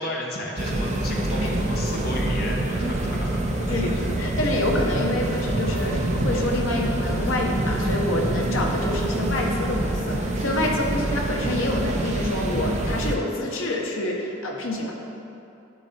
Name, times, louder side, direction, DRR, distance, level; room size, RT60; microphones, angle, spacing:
voice 1, 0.0-3.6, left 1 dB, 50° left, -2 dB, 1.0 m, -33 dB
sound 1, 0.6-13.1, right 1 dB, 35° right, 0.6 m, -26 dB
voice 2, 3.6-14.9, left 1 dB, 80° left, 0 dB, 1.1 m, -27 dB
10.5 x 4.1 x 4.3 m, 2.8 s
head